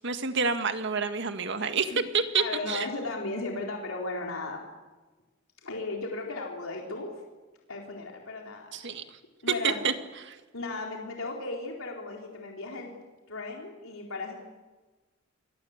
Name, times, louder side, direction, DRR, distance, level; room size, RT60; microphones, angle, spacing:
voice 1, 0.0-2.9 8.7-9.0 9.6-9.9 10.2-10.4, right 5 dB, 60° right, 8 dB, 1.9 m, -28 dB
voice 2, 2.3-4.6 5.6-7.1 7.7-9.0 9.4-9.8 10.5-12.9 13.3-14.3, left 2 dB, 75° left, 0 dB, 4.1 m, -36 dB
27.5 x 22.5 x 8.1 m, 1.3 s
head